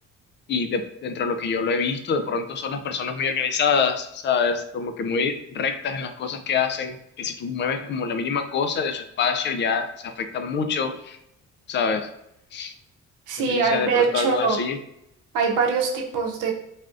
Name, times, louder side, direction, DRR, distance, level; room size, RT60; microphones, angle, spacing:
voice 1, 0.5-11.2 11.7-12.1 12.5-12.7 13.5-14.8, left 5 dB, 40° left, 7 dB, 0.4 m, -26 dB
voice 2, 13.3-14.6 15.3-16.5, right 4 dB, 85° right, 1 dB, 0.7 m, -23 dB
3.3 x 2.3 x 2.5 m, 0.80 s
cardioid pair, 90°, 30 cm